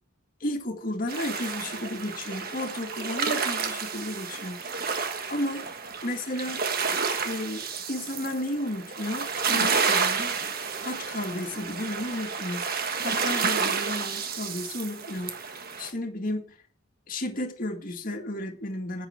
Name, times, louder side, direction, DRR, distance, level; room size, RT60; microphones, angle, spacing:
voice 1, 0.4-4.6 5.3-5.6 6.0-6.6 7.2-10.3 10.8-12.6 13.0-15.4 15.8-16.5 17.1-19.1, left 1 dB, 40° left, 2.0 m, -33 dB
sound 1, 1.1-15.9, right 5 dB, 45° right, 1.3 m, -30 dB
10.0 x 8.1 x 6.2 m
head